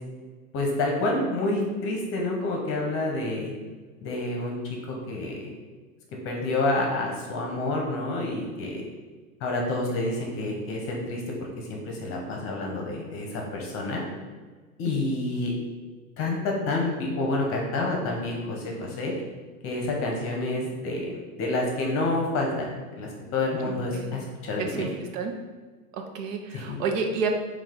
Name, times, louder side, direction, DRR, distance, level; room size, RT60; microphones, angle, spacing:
voice 1, 0.5-3.5 4.0-5.4 6.2-8.8 9.4-14.0 14.8-15.5 16.2-19.1 19.6-24.9 26.5-26.8, left 2 dB, 30° left, 0 dB, 0.8 m, -28 dB
voice 2, 23.6-24.1 24.6-25.3 25.9-27.3, right 5 dB, 60° right, 4 dB, 0.7 m, -30 dB
4.5 x 2.4 x 3.7 m, 1.4 s
hypercardioid pair, 130°, 45 cm